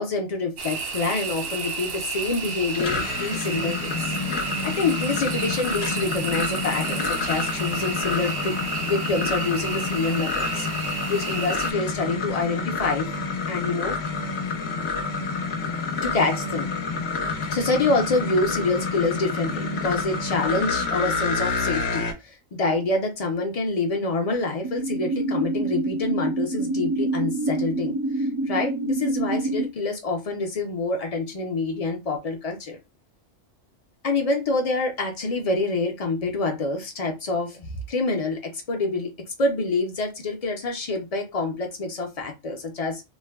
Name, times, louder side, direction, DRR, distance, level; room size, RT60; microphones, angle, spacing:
voice 1, 0.0-4.1 4.6-8.6 8.8-10.7 11.1-13.1 13.5-14.0 16.0-16.7 17.5-32.8 34.0-39.1 39.4-43.0, left 3 dB, 45° left, 0.5 m, -26 dB
sound 1, 0.6-11.7, right 5 dB, 60° right, 0.7 m, -32 dB
sound 2, 2.7-22.1, left 4 dB, 65° left, 0.8 m, -28 dB
sound 3, 24.6-29.6, right 2 dB, 25° right, 0.6 m, -26 dB
3.2 x 2.1 x 2.2 m
omnidirectional pair, 1.3 m